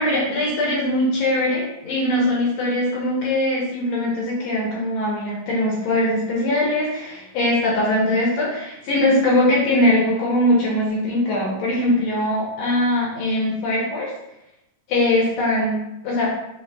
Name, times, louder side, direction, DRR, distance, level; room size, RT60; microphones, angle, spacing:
voice 1, 0.0-14.1 14.9-16.3, left 1 dB, 70° left, -4 dB, 1.7 m, -21 dB
6.2 x 3.0 x 2.3 m, 0.86 s
omnidirectional pair, 3.8 m